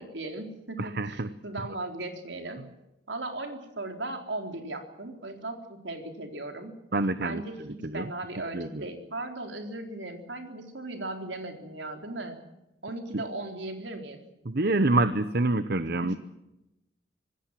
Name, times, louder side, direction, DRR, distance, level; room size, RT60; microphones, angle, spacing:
voice 1, 0.0-2.6 3.1-6.8 7.2-12.4 12.8-14.2 16.0-16.2, right 2 dB, 70° right, 5 dB, 3.9 m, -37 dB
voice 2, 0.8-1.3 6.9-7.4 7.8-8.1 8.5-8.8 13.1-13.2 14.4-16.1, right 2 dB, 55° right, 12 dB, 1.0 m, -26 dB
26.0 x 19.5 x 7.6 m, 0.93 s
head